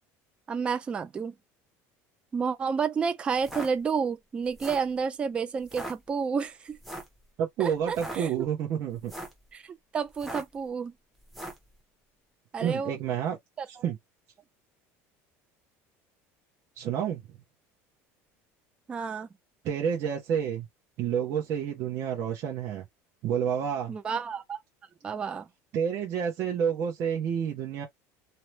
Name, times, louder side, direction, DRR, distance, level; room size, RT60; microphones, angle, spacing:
voice 1, 0.5-1.3 2.3-6.8 7.6-8.5 9.5-10.9 12.5-13.0 13.6-13.7 18.9-19.3 23.9-24.6 25.0-25.5, right 6 dB, 15° right, 0.3 m, -30 dB
sound 1, 3.3-3.7 4.4-4.9 5.6-5.9 6.8-7.2 7.8-8.2 8.9-9.4 10.1-10.6 11.3-11.7, right 1 dB, ahead, 0.7 m, -39 dB
voice 2, 7.4-9.1 12.6-13.4 13.7-14.0 16.8-17.4 19.6-20.7 21.0-22.8 23.2-23.9 25.7-27.9, right 8 dB, 45° right, 0.8 m, -29 dB
2.8 x 2.1 x 3.1 m
cardioid pair, 170°, 6 cm